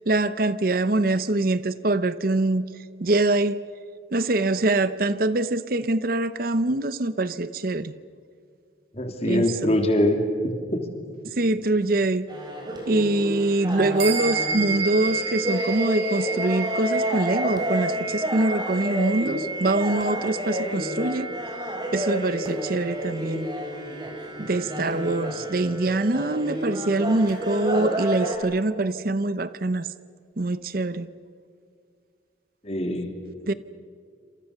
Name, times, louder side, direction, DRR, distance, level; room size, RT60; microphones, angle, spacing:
voice 1, 0.1-2.7 3.0-3.6 4.1-7.9 9.2-9.7 11.2-12.3 12.9-21.3 21.9-23.5 24.4-29.9 30.4-31.1 33.5-33.6, right 2 dB, 50° right, 14 dB, 0.7 m, -24 dB
voice 2, 8.9-10.2 10.7-10.8 32.6-33.1, left 1 dB, 35° left, 4 dB, 3.3 m, -23 dB
sound 1, 12.3-28.4, equal, 20° right, 4.5 m, -30 dB
sound 2, 14.0-23.7, right 4 dB, 85° right, 7.3 m, -32 dB
28.0 x 27.5 x 6.7 m, 2.2 s
head